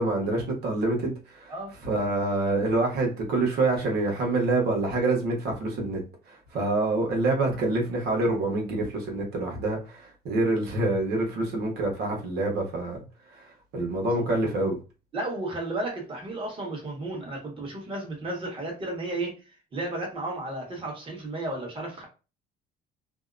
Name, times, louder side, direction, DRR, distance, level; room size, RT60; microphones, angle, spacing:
voice 1, 0.0-1.5 1.8-6.0 6.3-13.0 13.3-14.8, right 2 dB, 70° right, 1.1 m, -26 dB
voice 2, 15.1-19.4 19.7-22.0, right 2 dB, 30° right, 1.3 m, -33 dB
2.7 x 2.1 x 2.5 m
cardioid pair, 110°, 17 cm